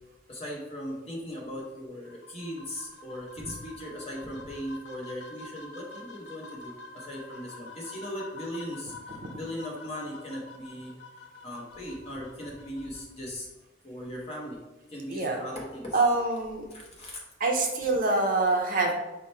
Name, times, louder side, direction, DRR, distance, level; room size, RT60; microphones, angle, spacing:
voice 1, 0.3-10.9 11.4-13.5 13.8-14.6 14.9-16.0 16.7-17.2, equal, 30° left, -3 dB, 0.9 m, -38 dB
sound 1, 2.0-13.0, left 3 dB, 60° left, 0.6 m, -47 dB
voice 2, 15.9-16.6 17.4-18.9, right 3 dB, 45° right, 1 dB, 0.5 m, -25 dB
4.8 x 2.1 x 4.2 m, 1.1 s
head